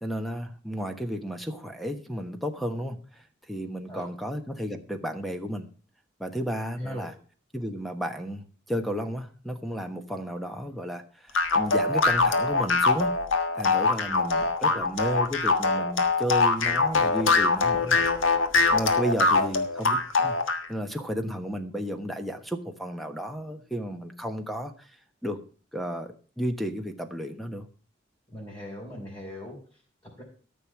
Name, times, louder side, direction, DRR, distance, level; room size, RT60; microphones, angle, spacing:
voice 1, 0.0-5.7 6.2-7.1 7.5-13.1 13.5-18.1 18.7-20.4 20.7-25.0 25.2-25.4 25.7-27.7, equal, ahead, 6 dB, 1.1 m, -33 dB
voice 2, 6.8-7.1 14.4-14.8 28.3-30.2, left 1 dB, 20° left, -5 dB, 4.1 m, -42 dB
sound 1, 11.3-20.7, left 3 dB, 85° left, 1.5 m, -23 dB
13.5 x 6.3 x 7.3 m, 0.41 s
head